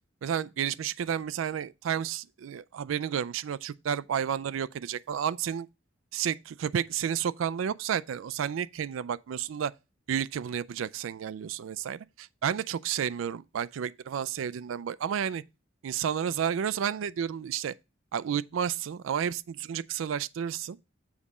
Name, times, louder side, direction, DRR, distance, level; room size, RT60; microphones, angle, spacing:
voice 1, 0.2-5.7 6.1-9.7 10.1-15.4 15.8-17.7 18.1-20.8, right 8 dB, 75° right, 0.3 m, -31 dB
7.3 x 4.1 x 4.8 m
head